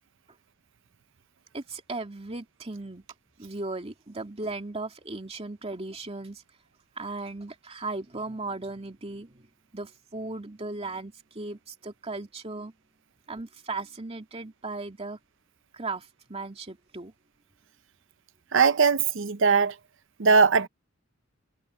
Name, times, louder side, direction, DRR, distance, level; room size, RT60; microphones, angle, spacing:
voice 1, 1.5-3.0 3.4-6.4 7.0-9.5 9.7-12.7 13.3-15.2 15.7-17.1, right 3 dB, 30° right, 2.5 m, -37 dB
voice 2, 18.5-19.7 20.2-20.7, right 5 dB, 65° right, 0.7 m, -20 dB
head